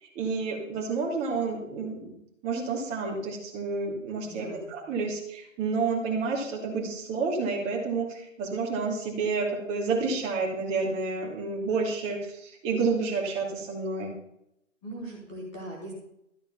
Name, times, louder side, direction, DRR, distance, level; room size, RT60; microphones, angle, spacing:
voice 1, 0.0-2.1 2.4-14.1, right 4 dB, 15° right, -1 dB, 2.6 m, -30 dB
voice 2, 4.2-4.9 14.8-15.9, right 1 dB, ahead, -9 dB, 0.5 m, -40 dB
13.5 x 8.8 x 5.8 m, 0.78 s
figure-of-eight pair, 145°, 38 cm